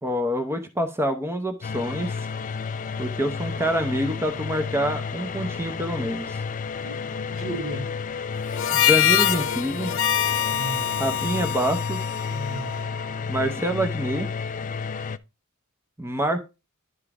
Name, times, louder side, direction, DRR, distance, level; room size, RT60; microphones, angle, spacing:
voice 1, 0.0-2.3 3.0-6.4 8.7-10.0 11.0-12.0 13.3-14.3 16.0-16.5, equal, 10° right, 0.7 m, -26 dB
sound 1, 1.6-15.2, left 5 dB, 35° left, 0.4 m, -32 dB
voice 2, 6.8-7.9 10.5-11.1 12.3-12.9, right 1 dB, 80° right, 5.6 m, -35 dB
Harmonica, 8.5-13.1, left 11 dB, 60° left, 0.8 m, -24 dB
11.0 x 3.7 x 4.7 m
head